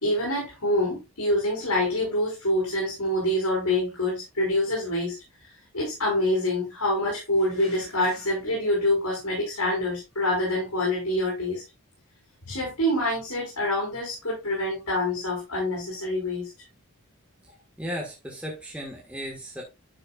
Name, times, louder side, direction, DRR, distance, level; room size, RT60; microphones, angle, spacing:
voice 1, 0.0-5.2 5.7-11.6 12.4-16.5, left 1 dB, 80° left, -3 dB, 4.8 m, -26 dB
voice 2, 17.8-19.6, equal, 5° right, -2 dB, 1.6 m, -35 dB
10.5 x 6.5 x 2.4 m, 0.23 s
head